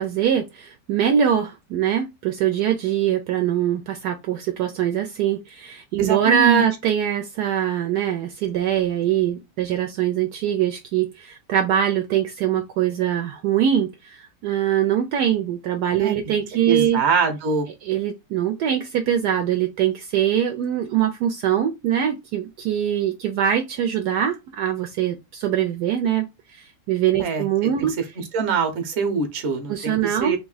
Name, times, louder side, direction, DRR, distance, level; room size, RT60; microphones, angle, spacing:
voice 1, 0.0-17.0 17.8-27.9 29.7-30.4, right 9 dB, 70° right, 1.0 m, -23 dB
voice 2, 6.0-6.7 16.0-16.1 16.7-17.7 27.2-27.7 28.2-30.4, right 5 dB, 50° right, 0.9 m, -24 dB
2.9 x 2.5 x 3.9 m
omnidirectional pair, 1.9 m